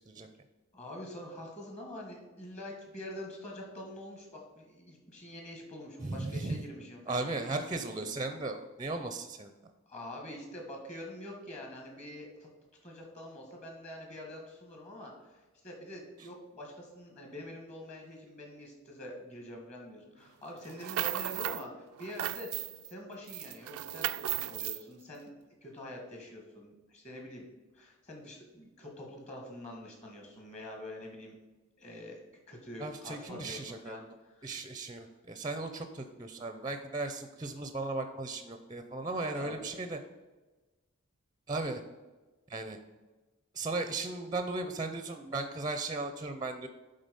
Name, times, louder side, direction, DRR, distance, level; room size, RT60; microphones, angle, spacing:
voice 1, 0.7-7.3 7.7-8.2 9.9-12.5 12.8-25.3 25.6-27.5 27.7-31.4 31.8-34.5 39.0-39.7, left 1 dB, 30° left, 0 dB, 1.8 m, -46 dB
voice 2, 6.0-6.6 7.1-9.5 32.8-34.0 34.4-40.0 41.5-41.8 42.5-42.8 43.5-46.7, right 3 dB, 20° right, 7 dB, 0.5 m, -36 dB
sound 1, 20.6-21.7 22.0-22.9 23.3-24.8, right 14 dB, 90° right, 0.3 m, -35 dB
10.5 x 3.9 x 5.3 m, 1.2 s
head